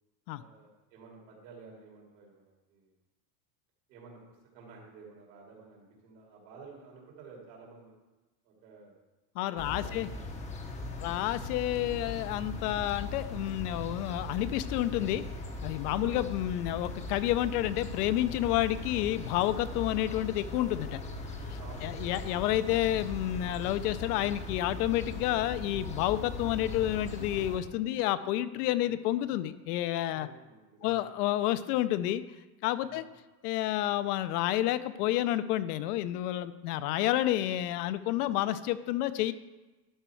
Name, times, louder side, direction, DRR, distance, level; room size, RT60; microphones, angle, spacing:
voice 1, 0.3-2.9 3.9-4.2 4.5-7.9 8.4-8.9 9.5-10.3 10.8-11.1 16.0-16.2 21.6-22.4 28.8-29.0 30.1-31.1 32.8-33.0 37.3-37.7, right 4 dB, 85° right, -2 dB, 3.1 m, -52 dB
voice 2, 9.4-10.1 11.0-15.2 15.6-21.0 21.8-30.3 30.8-32.2 32.6-33.0 33.4-39.3, left 13 dB, 70° left, 14 dB, 0.6 m, -30 dB
sound 1, 9.6-27.6, left 2 dB, 15° left, 0.5 m, -39 dB
11.5 x 4.6 x 4.5 m, 1.1 s
supercardioid pair, 155°, 49 cm